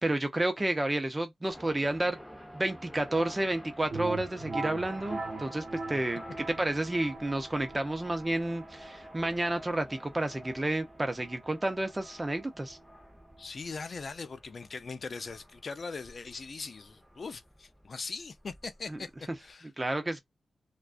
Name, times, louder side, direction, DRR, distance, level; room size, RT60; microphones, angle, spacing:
voice 1, 0.0-2.2 2.5-12.8 18.9-19.0 19.8-20.2, right 1 dB, 20° right, 0.6 m, -31 dB
sound 1, 1.5-19.5, equal, 5° left, 0.8 m, -51 dB
sound 2, 3.9-13.5, right 3 dB, 75° right, 0.8 m, -42 dB
voice 2, 13.4-19.1 19.4-19.7, left 4 dB, 55° left, 0.4 m, -40 dB
2.4 x 2.2 x 2.4 m
cardioid pair, 75°, 0 cm